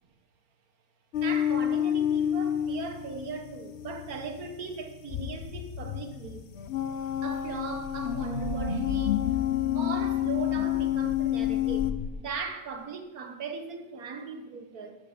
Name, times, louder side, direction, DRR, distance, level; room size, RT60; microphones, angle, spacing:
sound 1, 1.1-11.9, left 10 dB, 55° left, 0.8 m, -30 dB
voice 1, 1.2-6.5 7.2-9.4 9.7-15.0, right 4 dB, 60° right, 1.7 m, -38 dB
sound 2, 5.1-12.1, left 9 dB, 80° left, 0.5 m, -35 dB
13.5 x 13.0 x 5.0 m
omnidirectional pair, 1.8 m